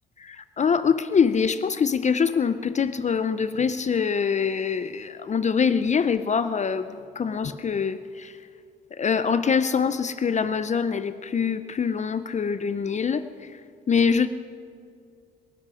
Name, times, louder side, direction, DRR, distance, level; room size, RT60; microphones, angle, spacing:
voice 1, 0.2-8.3 9.0-13.2 13.9-14.3, left 6 dB, 35° left, 12 dB, 0.6 m, -24 dB
25.0 x 11.5 x 5.0 m, 2.3 s
cardioid pair, 90°, 20 cm